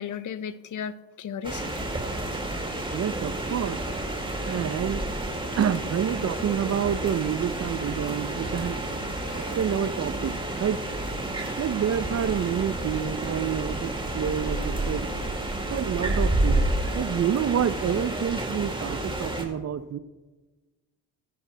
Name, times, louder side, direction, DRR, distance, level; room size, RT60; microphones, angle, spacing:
voice 1, 0.0-1.9 9.1-9.6, left 8 dB, 40° left, 15 dB, 0.7 m, -36 dB
sound 1, 1.4-19.5, right 1 dB, 10° right, 2.0 m, -30 dB
voice 2, 2.9-3.8 4.4-5.0 5.6-8.8 9.6-10.3 10.6-10.8 11.6-15.1 15.7-16.6 16.9-20.0, right 8 dB, 30° right, 15 dB, 0.6 m, -28 dB
Bell, 5.9-17.6, right 3 dB, 55° right, 4.0 m, -45 dB
19.5 x 9.8 x 2.2 m, 1.2 s
hypercardioid pair, 50°, 50 cm